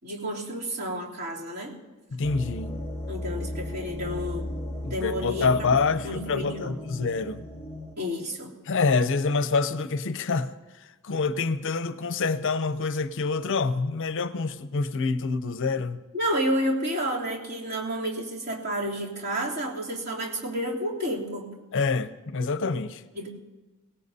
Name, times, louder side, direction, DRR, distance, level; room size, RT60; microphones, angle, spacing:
voice 1, 0.0-1.7 3.1-4.5 4.9-5.5 6.0-6.8 8.0-8.5 16.1-21.5 23.1-23.3, equal, 50° right, 3.1 m, -30 dB
voice 2, 2.1-2.8 4.8-7.5 8.7-16.0 21.7-23.0, left 4 dB, 60° left, 0.6 m, -27 dB
sound 1, 2.2-8.0, left 1 dB, 10° left, 1.1 m, -36 dB
23.0 x 17.5 x 2.7 m
head